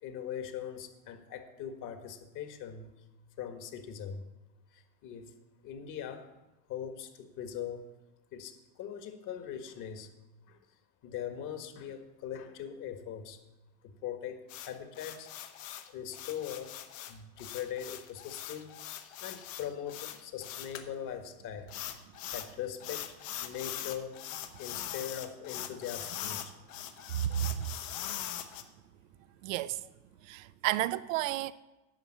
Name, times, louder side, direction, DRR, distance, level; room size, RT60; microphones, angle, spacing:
voice 1, 0.0-2.9 3.4-4.2 4.7-5.3 5.6-6.3 6.7-7.8 8.3-10.1 10.5-10.6 11.0-13.4 13.8-15.3 15.9-16.7 17.1-21.7 22.3-23.2 23.4-24.2 24.6-26.6 29.5-29.6, left 9 dB, 50° left, 1.6 m, -41 dB
sound 1, 14.5-20.8 21.7-22.5 22.8-28.6, left 11 dB, 70° left, 1.2 m, -41 dB
voice 2, 27.1-27.7 29.4-29.8 30.2-31.5, right 13 dB, 75° right, 0.6 m, -31 dB
11.0 x 5.8 x 8.6 m
supercardioid pair, 105°, 40 cm